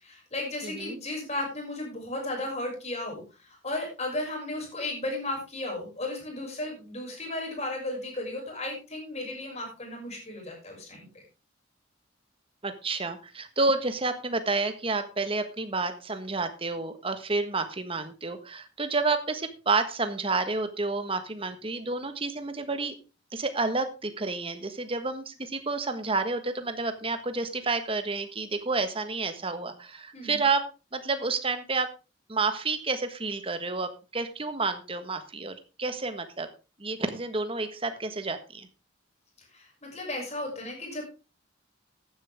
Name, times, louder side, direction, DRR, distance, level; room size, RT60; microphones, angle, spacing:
voice 1, 0.0-11.2 30.1-30.4 39.5-41.0, left 2 dB, 35° left, 0 dB, 6.4 m, -35 dB
voice 2, 0.6-1.0 12.6-22.9 23.3-30.7 30.9-31.9 32.3-36.5 36.8-38.7, right 3 dB, 30° right, 9 dB, 1.4 m, -30 dB
14.5 x 10.5 x 3.6 m, 0.31 s
head